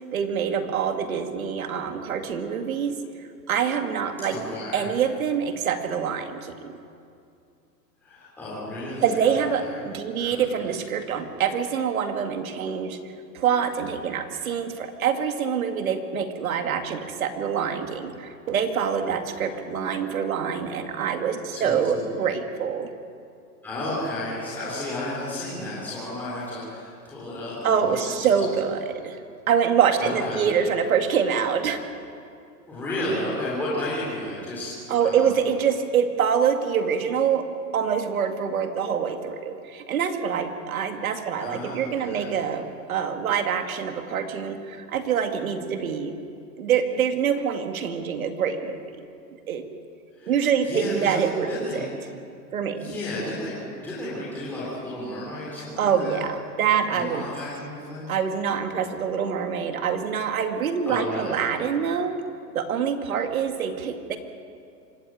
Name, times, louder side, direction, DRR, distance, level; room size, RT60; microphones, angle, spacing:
voice 1, 0.1-3.0 3.5-4.4 4.7-6.7 9.0-13.0 13.3-22.9 27.6-29.2 29.5-31.8 34.9-37.4 37.7-46.2 46.6-48.8 49.5-49.7 50.3-51.8 52.5-53.0 55.8-57.3 58.1-62.2 62.5-64.2, right 7 dB, 55° right, 6 dB, 2.3 m, -25 dB
voice 2, 4.2-4.9 8.0-9.8 10.2-10.5 19.5-19.6 21.5-22.1 23.6-28.5 30.0-30.4 32.7-35.4 40.8-42.4 50.1-51.2 51.5-51.8 52.8-56.2 56.9-58.1 60.8-61.4, left 1 dB, 5° left, -9 dB, 3.8 m, -33 dB
25.5 x 14.0 x 9.2 m, 2.4 s
hypercardioid pair, 175°, 49 cm